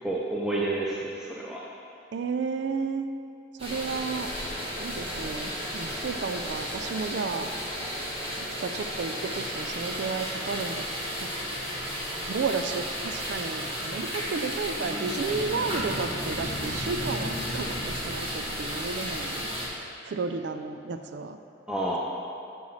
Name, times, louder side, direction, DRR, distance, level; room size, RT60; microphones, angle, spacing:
voice 1, 0.0-1.6 21.7-22.0, right 2 dB, 5° right, -5 dB, 0.4 m, -29 dB
voice 2, 2.1-3.1 3.6-4.3 4.8-7.5 8.6-10.9 11.2-11.3 11.5-11.7 12.3-19.5 20.0-21.4, right 4 dB, 65° right, 8 dB, 0.4 m, -32 dB
sound 1, 3.6-19.7, equal, 30° right, 1.6 m, -33 dB
9.3 x 6.2 x 3.2 m, 2.7 s
head